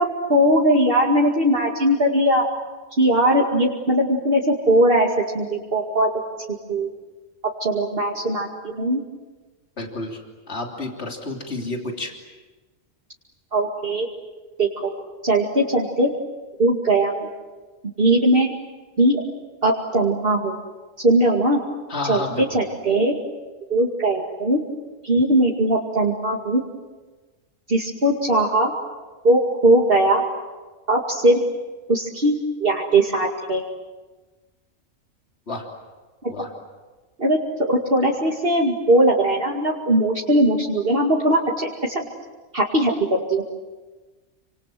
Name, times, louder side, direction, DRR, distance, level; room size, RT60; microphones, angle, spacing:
voice 1, 0.0-2.5 3.0-6.1 6.7-6.9 7.6-9.0 13.5-14.1 14.6-14.9 15.2-16.1 16.6-17.3 18.0-18.5 19.0-19.2 19.6-20.6 21.0-21.6 22.1-23.2 23.7-24.6 25.0-26.6 27.7-28.7 29.2-30.2 30.9-31.4 31.9-33.6 36.2-36.3 37.2-42.1 42.5-43.5, right 1 dB, 45° right, -1 dB, 2.5 m, -19 dB
voice 2, 9.8-10.2 10.5-12.1 21.9-22.6 35.5-35.7 36.3-36.5, left 2 dB, 55° left, 1 dB, 3.6 m, -30 dB
29.5 x 26.0 x 7.7 m, 1.3 s
omnidirectional pair, 1.3 m